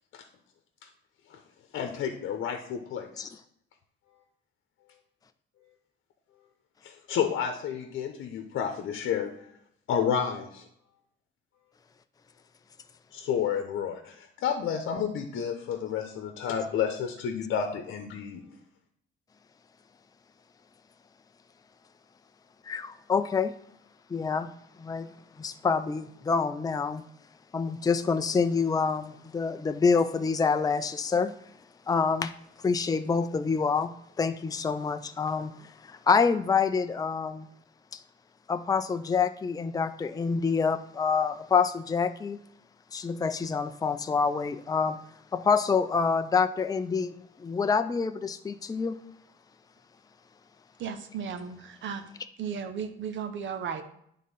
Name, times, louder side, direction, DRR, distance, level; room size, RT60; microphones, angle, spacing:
voice 1, 1.7-3.3 6.8-9.3 9.9-10.6 13.1-18.4, left 7 dB, 75° left, 5 dB, 0.9 m, -30 dB
voice 2, 22.7-23.5 24.1-24.5 24.8-25.1 25.4-27.0 27.5-31.3 31.9-32.3 32.6-37.5 38.5-42.4 42.9-45.0 45.3-49.0, left 5 dB, 20° left, 9 dB, 0.5 m, -27 dB
voice 3, 50.8-52.0 52.4-53.8, right 7 dB, 70° right, 8 dB, 1.0 m, -35 dB
9.3 x 3.8 x 5.4 m, 0.71 s
cardioid pair, 90°, 20 cm